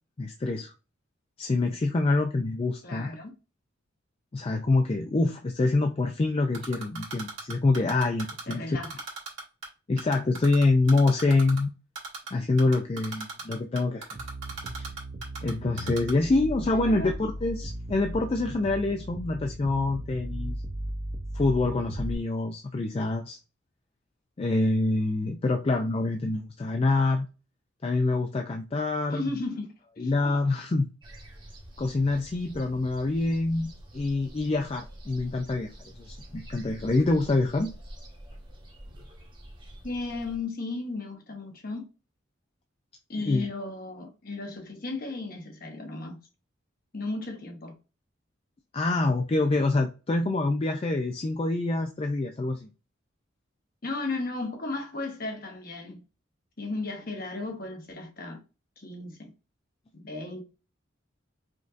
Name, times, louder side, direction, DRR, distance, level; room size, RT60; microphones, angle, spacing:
voice 1, 0.2-0.7 1.4-3.1 4.3-8.8 9.9-11.7 12.3-14.1 14.8-14.9 15.4-20.6 21.3-23.4 24.4-27.3 27.8-29.3 30.0-30.9 31.8-37.7 43.2-43.5 48.7-52.7, left 2 dB, 30° left, 0.3 m, -26 dB
voice 2, 2.8-3.3 8.5-8.9 16.7-17.1 29.1-30.1 39.8-41.8 43.1-46.2 46.9-47.7 53.8-56.0 56.6-58.4 58.8-59.3 59.9-60.4, left 2 dB, 50° left, 1.0 m, -35 dB
Typing, 6.5-8.5 8.8-9.7 10.0-11.6 11.9-12.3 12.6-15.5 15.8-16.1, right 4 dB, 75° right, 1.5 m, -37 dB
sound 1, 14.1-22.1, right 1 dB, 45° right, 0.6 m, -37 dB
sound 2, 31.0-40.4, right 1 dB, 25° right, 1.1 m, -47 dB
5.1 x 2.6 x 2.5 m
head